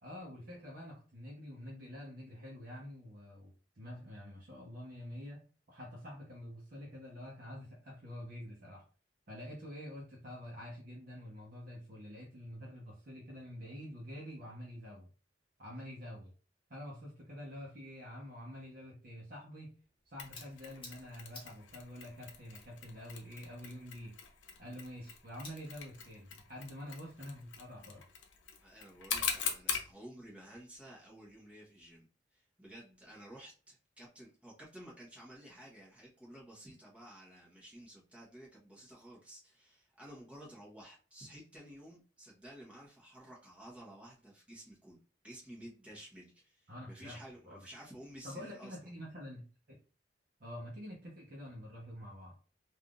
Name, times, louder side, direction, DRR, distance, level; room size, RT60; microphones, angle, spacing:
voice 1, 0.0-3.5 3.8-5.4 5.7-8.8 9.3-15.1 15.6-16.3 16.7-19.7 20.1-24.1 24.6-28.0 46.7-47.2 47.5-47.6 48.2-49.8 50.4-52.4, equal, 55° right, -4 dB, 0.9 m, -47 dB
sound 1, 19.7-32.0, left 2 dB, 30° left, 1.4 m, -60 dB
Mechanisms, 20.2-29.9, left 7 dB, 90° left, 0.6 m, -43 dB
voice 2, 28.6-32.1 32.3-45.0 45.2-48.9, right 1 dB, 10° right, -5 dB, 1.0 m, -53 dB
3.5 x 2.5 x 2.4 m, 0.37 s
head